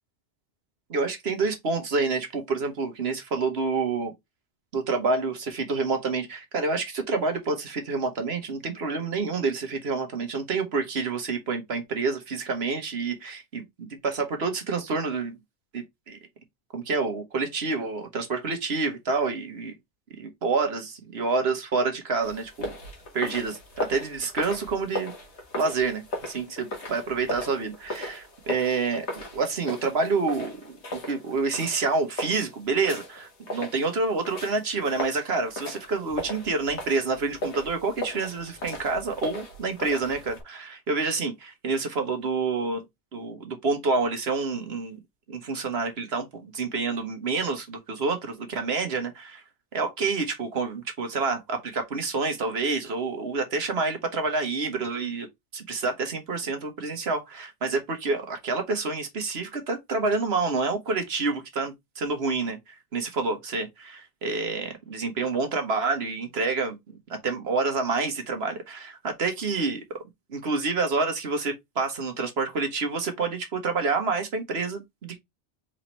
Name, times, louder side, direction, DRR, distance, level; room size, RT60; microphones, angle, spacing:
voice 1, 0.9-4.1 4.7-15.4 15.7-16.2 16.7-19.8 20.2-22.7 23.1-25.1 25.6-30.5 30.9-42.8 43.1-45.0 45.3-49.4 49.7-55.3 55.5-66.8 67.1-70.0 70.3-75.2, right 4 dB, 60° right, 1.4 m, -28 dB
sound 1, 22.2-40.4, left 1 dB, 70° left, 1.8 m, -37 dB
4.4 x 3.8 x 3.0 m
omnidirectional pair, 1.2 m